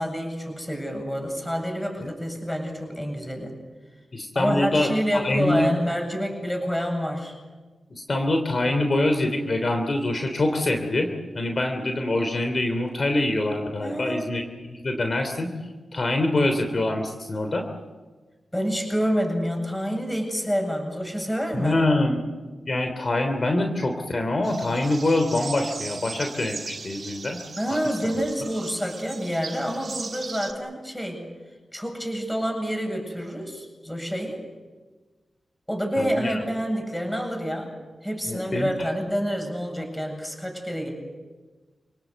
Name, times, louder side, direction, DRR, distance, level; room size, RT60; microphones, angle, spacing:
voice 1, 0.0-3.5 4.3-7.3 13.8-14.3 18.5-21.8 27.5-31.2 31.7-34.4 35.7-37.7 38.0-40.9, equal, 5° left, 3 dB, 8.0 m, -28 dB
voice 2, 4.1-4.9 5.2-5.7 7.9-11.1 11.3-15.5 15.9-17.6 21.5-22.2 22.7-27.4 27.7-27.8 36.0-36.4 38.3-38.7, left 2 dB, 45° left, 5 dB, 3.2 m, -25 dB
sound 1, 24.4-30.5, right 4 dB, 55° right, 2.6 m, -38 dB
29.5 x 18.0 x 8.3 m, 1.3 s
cardioid pair, 60°, 0 cm